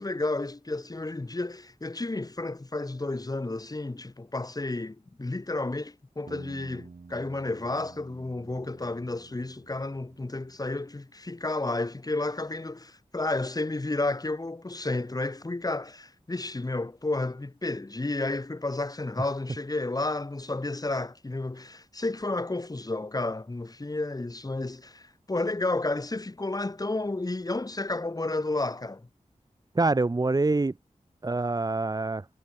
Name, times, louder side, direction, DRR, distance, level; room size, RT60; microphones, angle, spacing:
voice 1, 0.0-29.1, left 2 dB, 25° left, 1.0 m, -31 dB
sound 1, 6.3-10.9, right 4 dB, 70° right, 5.4 m, -50 dB
voice 2, 29.7-30.7 31.2-32.3, right 3 dB, 30° right, 0.6 m, -25 dB
wide cardioid pair, 50°, 14 cm